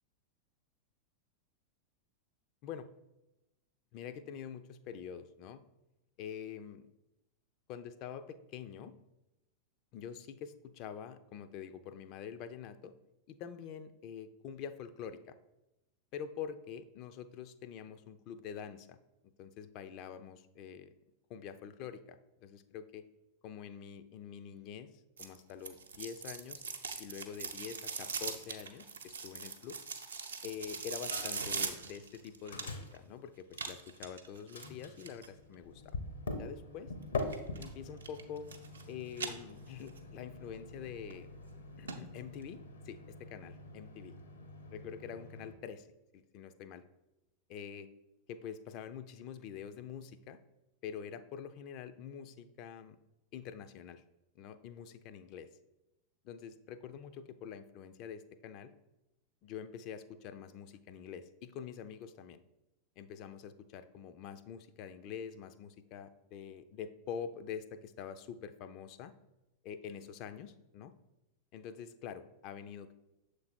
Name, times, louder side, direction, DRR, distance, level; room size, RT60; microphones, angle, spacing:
voice 1, 3.9-5.6 6.2-6.9 7.7-8.9 9.9-12.9 13.3-15.4 16.1-19.0 19.4-20.9 21.3-23.0 23.4-24.9 25.2-26.6 27.0-29.8 30.4-36.0 36.4-36.9 37.6-38.5 38.9-41.4 41.8-44.1 44.7-45.9 46.1-46.8 47.5-47.9 48.3-50.4 50.8-53.0 53.3-54.0 54.4-55.5 56.2-58.7 59.4-62.4 63.0-69.1 69.6-70.9 71.5-72.9, left 8 dB, 40° left, 11 dB, 0.4 m, -46 dB
sound 1, 25.2-33.0 33.5-35.3 37.2-37.7 38.0-38.8 39.1-40.0 40.4-40.5 41.1-41.2 41.5-41.6 41.9-42.0 42.3-42.4, right 5 dB, 70° right, 0.5 m, -41 dB
Microwave oven, 31.1-31.6 31.9-34.1 34.5-45.5, left 3 dB, 70° left, 0.8 m, -45 dB
6.8 x 3.3 x 4.2 m, 0.95 s
figure-of-eight pair, 90°, 0 cm